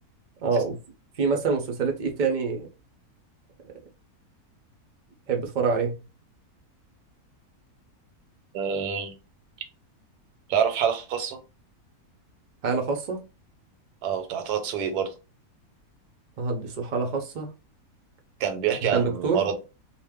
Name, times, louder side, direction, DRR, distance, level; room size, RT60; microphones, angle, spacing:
voice 1, 0.4-0.8 1.2-2.7 3.6-3.7 5.3-6.0 12.6-13.2 16.4-17.5 18.9-19.4, right 4 dB, 70° right, 0.4 m, -26 dB
voice 2, 8.5-9.1 10.5-11.4 14.0-15.1 18.4-19.5, right 8 dB, 90° right, 1.2 m, -26 dB
2.5 x 2.1 x 3.4 m
omnidirectional pair, 1.6 m